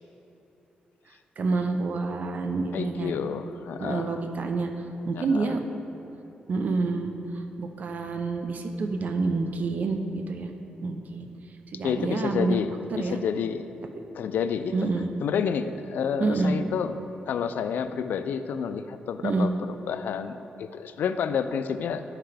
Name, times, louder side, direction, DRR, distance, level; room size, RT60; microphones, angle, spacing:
voice 1, 1.4-3.2 3.8-4.7 5.1-5.6 6.5-10.5 10.8-11.3 11.7-12.6 12.9-13.2 14.7-15.1 16.2-16.6 19.2-19.5, right 3 dB, 55° right, 5 dB, 0.6 m, -28 dB
voice 2, 2.7-4.2 5.1-5.6 11.8-13.6 14.2-14.7 15.2-16.9 17.3-19.5 19.9-22.0, left 7 dB, 80° left, 10 dB, 0.3 m, -29 dB
11.5 x 5.7 x 3.4 m, 2.9 s
cardioid pair, 95°, 3 cm